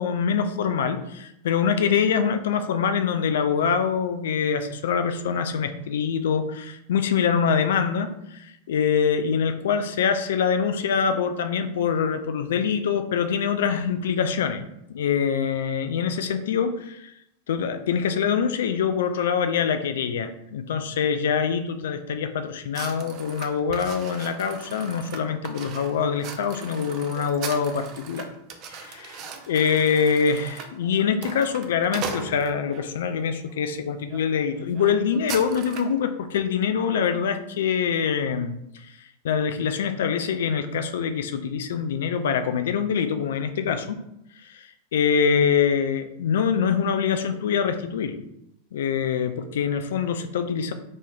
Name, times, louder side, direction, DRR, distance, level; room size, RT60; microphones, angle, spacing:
voice 1, 0.0-14.6 14.9-17.1 17.5-28.3 28.7-29.2 29.5-38.9 39.2-44.0 44.4-48.2 48.7-50.7, left 7 dB, 60° left, 8 dB, 0.3 m, -24 dB
sound 1, 22.7-32.9 33.5-33.7 34.1-34.2 34.5-36.0, right 6 dB, 35° right, 0.5 m, -39 dB
5.3 x 2.9 x 2.2 m, 0.80 s
figure-of-eight pair, 90°, 0 cm